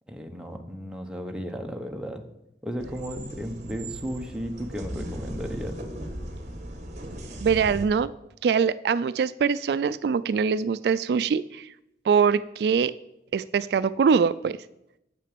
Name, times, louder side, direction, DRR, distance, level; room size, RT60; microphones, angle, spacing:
voice 1, 0.1-2.2 2.6-5.9, equal, 5° right, 3 dB, 0.8 m, -34 dB
sound 1, 2.8-7.9, right 1 dB, 40° right, 1.3 m, -37 dB
voice 2, 7.4-8.1 8.4-11.7 12.0-12.9 13.3-14.6, right 6 dB, 70° right, 16 dB, 0.3 m, -23 dB
9.0 x 6.8 x 6.7 m, 0.85 s
head